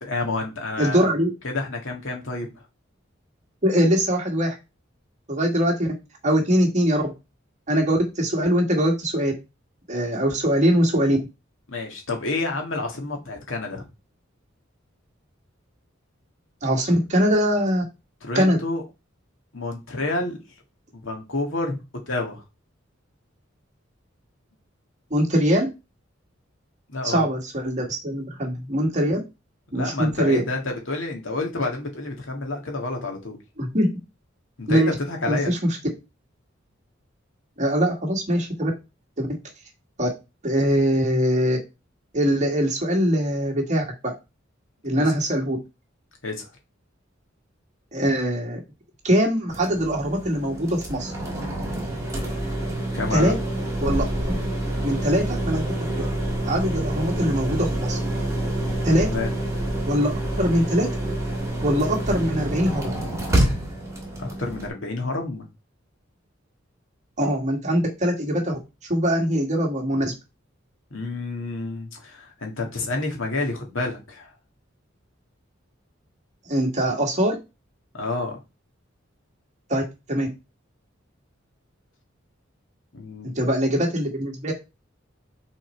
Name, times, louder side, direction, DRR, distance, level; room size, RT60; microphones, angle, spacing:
voice 1, 0.0-1.1 1.4-2.5 11.7-13.9 18.2-18.8 19.5-20.4 20.9-21.8 22.1-22.4 26.9-27.3 29.7-33.4 34.6-35.6 45.0-45.1 46.2-46.5 52.4-52.5 52.9-53.4 59.1-59.3 64.2-65.5 70.9-74.3 77.9-78.4 82.9-83.4, left 2 dB, 75° left, 2 dB, 2.1 m, -29 dB
voice 2, 0.8-1.3 3.6-4.5 5.3-5.9 6.2-7.0 7.7-9.3 9.9-11.2 16.6-17.8 18.4-18.6 25.1-25.7 27.0-29.2 29.7-30.4 33.6-33.9 34.7-34.9 35.3-35.6 37.6-38.7 39.2-39.3 40.0-40.1 40.4-41.6 42.1-44.1 44.8-45.6 47.9-48.6 49.0-51.1 53.1-53.3 53.8-54.4 54.8-56.1 56.4-58.0 58.8-59.1 59.9-60.9 61.6-62.9 67.2-68.6 68.9-70.1 76.5-77.4 79.7-79.8 80.1-80.3 83.4-84.5, equal, 35° right, 0 dB, 2.1 m, -22 dB
sound 1, 49.5-64.7, right 1 dB, 15° right, 2.3 m, -27 dB
6.2 x 4.3 x 4.6 m, 0.26 s
head